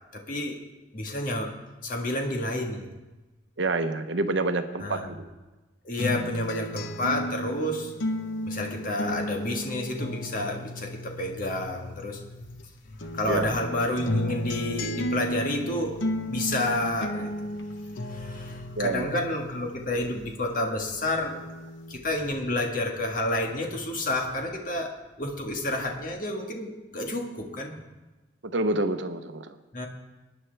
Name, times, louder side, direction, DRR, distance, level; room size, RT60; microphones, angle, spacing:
voice 1, 0.1-0.6 0.9-1.5 1.8-2.9 4.8-5.1 5.8-7.9 8.4-12.5 13.0-17.3 18.0-21.4 21.9-27.8 29.7-29.9, left 1 dB, 45° left, 2 dB, 1.5 m, -30 dB
voice 2, 3.6-5.2 13.3-13.5 18.8-19.1 28.4-29.6, right 2 dB, 75° right, 9 dB, 0.8 m, -27 dB
sound 1, 6.0-12.6 13.0-20.6 21.0-22.0, equal, 90° left, 0.8 m, -34 dB
20.0 x 9.8 x 3.4 m, 1.2 s
head